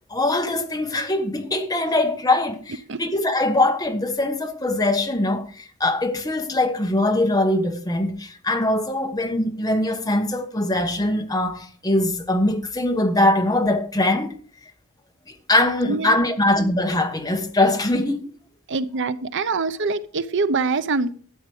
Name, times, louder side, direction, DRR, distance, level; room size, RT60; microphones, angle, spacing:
voice 1, 0.1-14.3 15.3-18.2, left 1 dB, 15° left, 1.4 m, -22 dB
voice 2, 15.9-16.2 18.7-21.1, right 4 dB, 55° right, 0.6 m, -24 dB
13.0 x 8.7 x 4.9 m
head